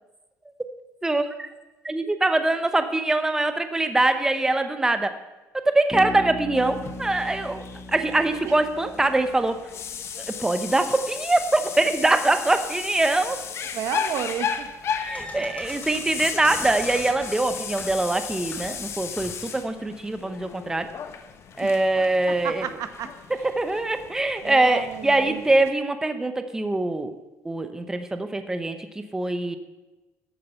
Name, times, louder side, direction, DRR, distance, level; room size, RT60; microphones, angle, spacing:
voice 1, 1.0-1.5 1.8-5.1 5.5-9.6 10.3-13.4 15.0-20.9 21.6-22.7 23.4-27.1 27.4-28.8 29.1-29.6, right 2 dB, 10° right, 9 dB, 0.8 m, -23 dB
Bass guitar, 5.9-9.6, left 1 dB, 5° left, 1.4 m, -37 dB
sound 1, 6.5-25.7, left 7 dB, 50° left, 1.0 m, -35 dB
voice 2, 13.7-14.7 15.2-15.3 21.6-21.7 22.4-23.1 24.4-25.4, right 9 dB, 70° right, 10 dB, 1.1 m, -32 dB
sound 2, 14.5-19.5, left 1 dB, 25° left, 3.6 m, -42 dB
13.5 x 8.6 x 5.7 m, 1.1 s
cardioid pair, 125°, 6 cm